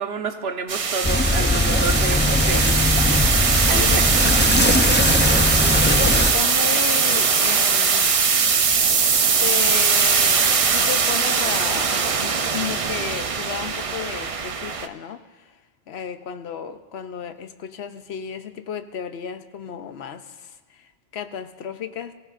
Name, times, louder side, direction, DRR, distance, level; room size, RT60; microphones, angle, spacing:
voice 1, 0.0-2.9 3.7-3.9, right 5 dB, 75° right, 6 dB, 1.2 m, -29 dB
sound 1, 0.7-14.9, right 5 dB, 40° right, 0.5 m, -20 dB
sound 2, 1.0-6.3, left 2 dB, 15° left, 0.4 m, -20 dB
voice 2, 3.7-4.6 5.7-8.2 9.4-15.6 15.9-22.1, left 8 dB, 80° left, 10 dB, 1.0 m, -33 dB
23.5 x 15.0 x 2.5 m, 1.3 s
omnidirectional pair, 1.1 m